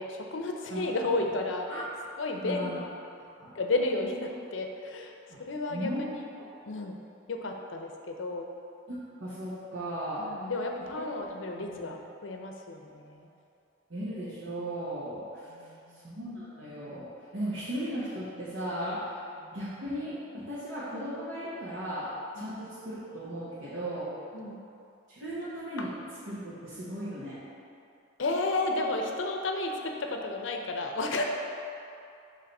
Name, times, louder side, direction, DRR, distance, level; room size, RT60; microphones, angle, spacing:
voice 1, 0.0-1.8 2.2-2.8 3.6-5.1 5.4-6.1 6.7-7.0 7.3-8.5 10.2-13.3 15.5-16.0 22.4-22.5 24.3-24.6 28.2-31.2, left 2 dB, 80° left, 2 dB, 0.6 m, -32 dB
voice 2, 2.4-2.8 3.4-3.5 5.3-5.4 5.7-6.0 6.3-6.4 8.9-10.2 11.6-12.0 13.9-15.2 16.0-17.1 17.3-19.1 19.5-22.1 22.3-24.1 25.2-25.9 26.2-27.4, right 1 dB, 85° right, -11 dB, 1.2 m, -36 dB
6.9 x 3.0 x 5.3 m, 2.6 s
head